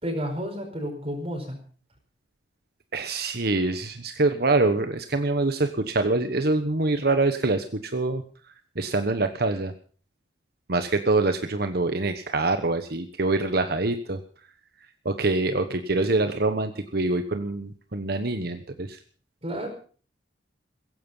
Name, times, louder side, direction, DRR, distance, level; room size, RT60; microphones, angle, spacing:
voice 1, 0.0-1.6 19.4-19.7, equal, 35° right, 1 dB, 4.8 m, -31 dB
voice 2, 2.9-8.2 8.7-9.7 10.7-14.2 15.0-19.0, right 2 dB, 60° right, 8 dB, 1.2 m, -25 dB
16.5 x 15.5 x 5.6 m, 0.43 s
head